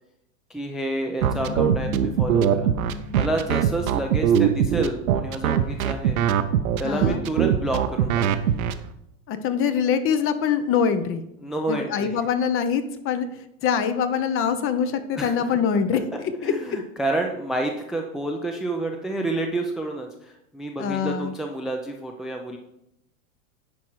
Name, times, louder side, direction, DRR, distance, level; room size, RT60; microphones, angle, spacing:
voice 1, 0.5-2.7 3.1-6.2 6.8-8.2 11.4-12.2 15.2-15.3 15.9-16.0 16.4-22.6, right 2 dB, ahead, 3 dB, 0.4 m, -29 dB
sound 1, 1.2-5.8, left 7 dB, 55° left, 2.3 m, -37 dB
sound 2, 1.2-8.7, right 9 dB, 80° right, 0.8 m, -21 dB
voice 2, 6.8-7.2 9.3-11.2 11.7-13.3 13.6-16.5 20.8-21.3, left 7 dB, 30° left, 11 dB, 0.7 m, -24 dB
10.0 x 4.7 x 4.6 m, 0.81 s
hypercardioid pair, 120°, 42 cm